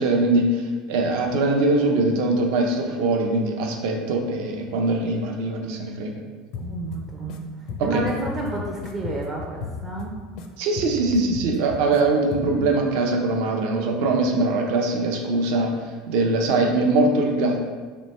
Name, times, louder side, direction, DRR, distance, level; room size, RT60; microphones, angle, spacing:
voice 1, 0.0-6.2 7.8-8.0 10.6-15.7 16.1-17.7, right 2 dB, 65° right, 2 dB, 0.6 m, -22 dB
sound 1, 6.5-7.4 7.7-10.5 10.8-12.0 12.3-12.7, left 5 dB, 55° left, 0.4 m, -35 dB
voice 2, 6.6-7.5 7.8-10.1, right 2 dB, 25° right, -2 dB, 0.5 m, -30 dB
3.1 x 3.1 x 4.2 m, 1.4 s
supercardioid pair, 150°, 0 cm